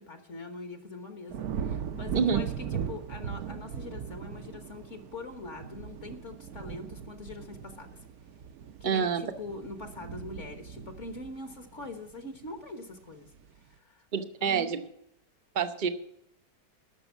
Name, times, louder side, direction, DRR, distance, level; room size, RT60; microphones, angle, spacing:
voice 1, 0.0-8.1 8.8-13.3 13.8-14.0 14.4-14.7, left 3 dB, 45° left, 7 dB, 1.6 m, -43 dB
sound 1, 1.3-12.6 13.0-13.5, right 8 dB, 65° right, 1.0 m, -39 dB
voice 2, 8.8-9.2 14.1-14.8 15.5-15.9, right 6 dB, 40° right, 9 dB, 0.7 m, -27 dB
12.5 x 6.5 x 8.1 m, 0.78 s
omnidirectional pair, 1.9 m